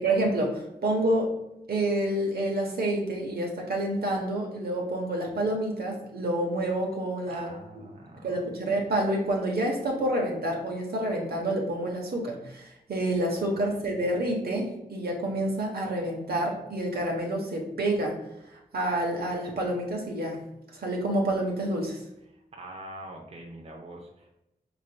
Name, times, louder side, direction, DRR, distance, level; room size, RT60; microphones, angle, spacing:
voice 1, 0.0-1.3 1.7-7.8 8.2-18.1 18.5-20.4 20.7-22.0, right 1 dB, 70° right, 0 dB, 1.0 m, -28 dB
voice 2, 7.3-8.4 13.2-13.8 22.5-24.4, right 1 dB, 40° right, 0 dB, 0.7 m, -44 dB
4.7 x 3.4 x 2.2 m, 0.88 s
cardioid pair, 60°, 17 cm